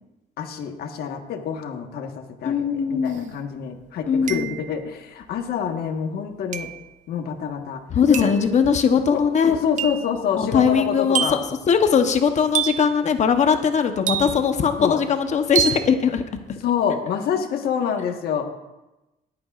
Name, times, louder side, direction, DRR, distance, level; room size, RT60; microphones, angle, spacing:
voice 1, 0.4-6.7 7.1-7.8 8.1-8.3 9.1-11.4 14.8-15.0 16.6-18.5, left 7 dB, 70° left, 5 dB, 1.4 m, -27 dB
voice 2, 2.4-3.3 4.1-4.5 7.9-9.6 10.4-11.4 11.7-16.2 16.5-16.6, left 6 dB, 45° left, 7 dB, 0.9 m, -20 dB
sound 1, 3.1-3.2 4.3-4.8 6.5-6.9 8.1-8.5 9.8-10.1 11.1-11.6 12.5-13.0 14.1-14.6 15.6-15.9, right 9 dB, 45° right, 0.5 m, -26 dB
20.5 x 8.6 x 2.4 m, 1.0 s
cardioid pair, 110°, 17 cm